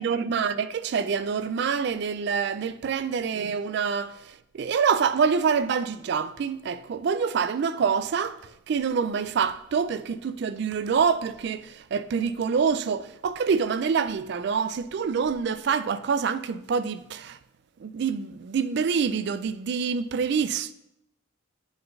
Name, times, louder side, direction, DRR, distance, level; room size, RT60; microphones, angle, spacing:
voice 1, 0.0-17.4 17.8-20.7, right 6 dB, 55° right, 0.3 m, -26 dB
8.0 x 3.8 x 5.3 m
head